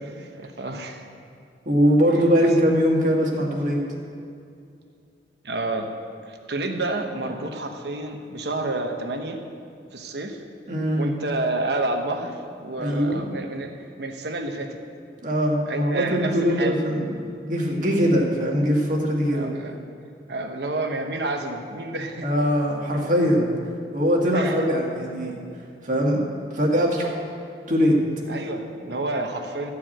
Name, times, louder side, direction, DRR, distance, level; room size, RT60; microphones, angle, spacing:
voice 1, 0.0-1.1 2.4-2.5 5.4-5.9 6.3-9.4 9.9-10.4 11.0-13.7 14.0-14.8 15.7-16.8 19.3-19.8 20.3-22.3 24.3-24.7 28.3-29.7, right 2 dB, 70° right, 4 dB, 1.1 m, -29 dB
voice 2, 1.7-3.8 10.7-11.1 12.8-13.3 15.2-17.1 17.4-19.5 22.2-23.5 23.9-25.4 25.8-26.2 26.5-27.2 27.7-28.0, equal, 45° right, -2 dB, 1.8 m, -21 dB
14.0 x 4.8 x 8.9 m, 2.5 s
head